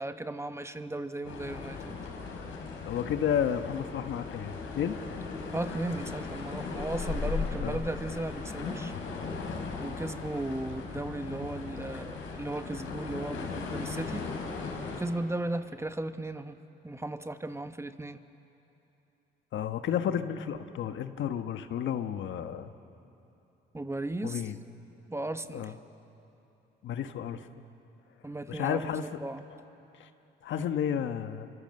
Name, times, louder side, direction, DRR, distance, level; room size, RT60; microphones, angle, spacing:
voice 1, 0.0-2.0 5.5-8.9 9.8-14.2 14.9-16.6 16.8-18.2 23.7-24.4 25.1-25.7 28.2-28.9 29.2-29.4, right 2 dB, 15° right, 9 dB, 1.1 m, -36 dB
sound 1, 1.2-15.0, left 4 dB, 90° left, 4.8 m, -37 dB
voice 2, 2.9-5.0 7.6-7.8 19.5-22.7 24.2-24.6 25.5-25.8 26.8-27.5 28.5-29.1 30.0-30.1 30.4-31.5, left 9 dB, 70° left, 9 dB, 1.2 m, -32 dB
29.5 x 24.5 x 7.8 m, 2.9 s
cardioid pair, 90°, 20 cm